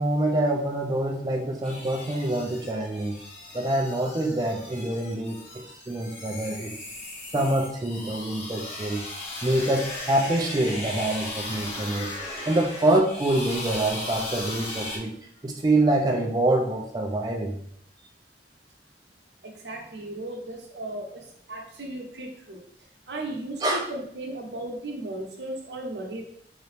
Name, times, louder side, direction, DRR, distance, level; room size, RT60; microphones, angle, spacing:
voice 1, 0.0-3.2 3.5-6.7 7.3-9.0 9.4-12.1 12.5-15.2 15.4-17.6 23.6-23.8, right 1 dB, 20° right, 0 dB, 0.3 m, -25 dB
sound 1, 1.6-15.0, left 2 dB, 35° left, 0.9 m, -37 dB
voice 2, 19.4-22.6 23.1-26.2, right 1 dB, 75° right, 1 dB, 0.9 m, -36 dB
4.0 x 2.8 x 3.3 m, 0.66 s
head